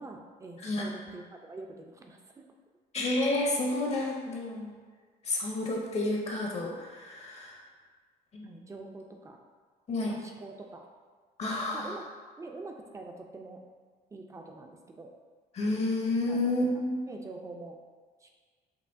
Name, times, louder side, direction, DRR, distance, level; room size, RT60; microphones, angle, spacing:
voice 1, 0.0-2.5 8.4-9.4 10.1-10.9 11.7-12.0 12.4-13.6 14.1-15.1 16.3-16.4 17.1-17.8 18.2-18.3, right 3 dB, 20° right, 2 dB, 0.4 m, -45 dB
voice 2, 0.6-0.9 2.9-4.7 5.2-7.6 8.3-8.5 9.9-10.1 11.4-12.0 15.5-17.0, left 2 dB, 40° left, -1 dB, 0.7 m, -30 dB
5.5 x 2.1 x 2.6 m, 1.5 s
cardioid pair, 110°, 17 cm